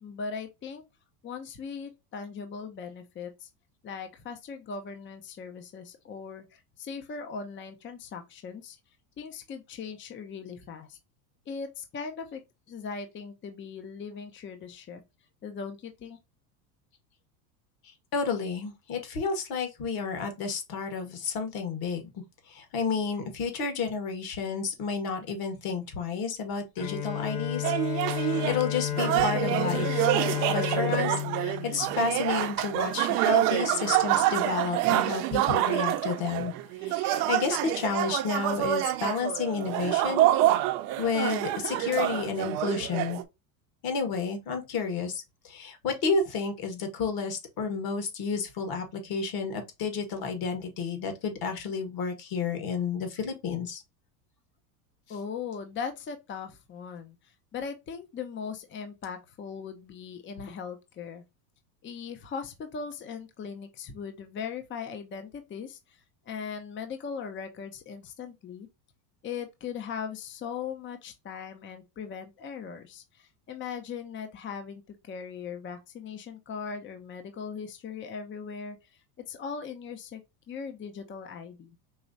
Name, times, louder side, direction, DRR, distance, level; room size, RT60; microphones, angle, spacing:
voice 1, 0.0-0.8 1.2-3.5 3.8-8.8 9.2-11.0 11.5-12.4 12.7-15.0 15.4-16.2 55.1-61.2 61.8-66.0 66.3-68.7 69.2-78.8 79.3-80.2 80.5-81.8, left 6 dB, 25° left, 0.7 m, -39 dB
voice 2, 18.1-22.1 22.5-30.0 30.5-36.5 36.8-40.3 41.0-43.2 43.8-53.8, left 5 dB, 45° left, 1.7 m, -31 dB
Bowed string instrument, 26.8-32.7, left 12 dB, 75° left, 1.6 m, -32 dB
sound 1, 27.6-28.6 28.9-43.2, right 14 dB, 65° right, 0.8 m, -27 dB
4.8 x 3.0 x 2.6 m
supercardioid pair, 110°, 49 cm